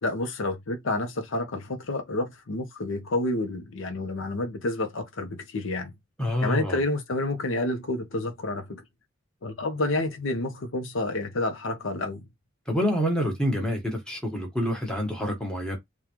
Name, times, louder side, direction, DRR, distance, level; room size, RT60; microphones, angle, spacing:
voice 1, 0.0-5.9 6.4-8.8 9.4-12.2, left 2 dB, 70° left, 0.7 m, -29 dB
voice 2, 6.2-6.8 12.7-15.8, equal, 5° left, 1.1 m, -27 dB
3.7 x 2.3 x 2.9 m
head